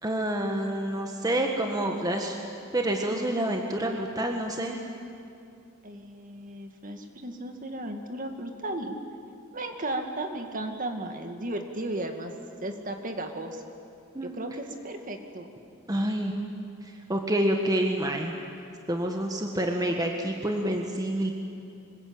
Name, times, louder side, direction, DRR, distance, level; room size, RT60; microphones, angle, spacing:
voice 1, 0.0-2.4 2.7-4.8 14.1-14.3 15.9-16.3 17.1-18.3 18.9-21.3, right 1 dB, 20° right, 2 dB, 1.6 m, -28 dB
voice 2, 5.8-9.0 9.5-12.3 12.6-13.6 14.2-15.5, right 1 dB, 40° right, 5 dB, 2.1 m, -35 dB
25.5 x 21.0 x 8.9 m, 2.5 s
head